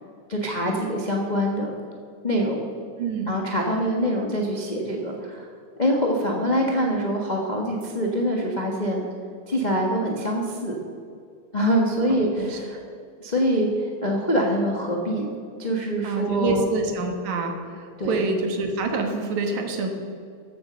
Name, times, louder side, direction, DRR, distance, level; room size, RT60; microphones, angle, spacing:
voice 1, 0.3-1.7 2.2-2.6 3.3-5.5 5.8-9.0 9.5-10.7 11.5-12.8 13.2-16.6 18.0-18.2, equal, 40° left, -1 dB, 0.6 m, -24 dB
voice 2, 3.0-3.3 12.1-12.6 16.0-19.9, right 3 dB, 75° right, 4 dB, 2.8 m, -27 dB
14.0 x 8.2 x 6.7 m, 2.3 s
omnidirectional pair, 3.4 m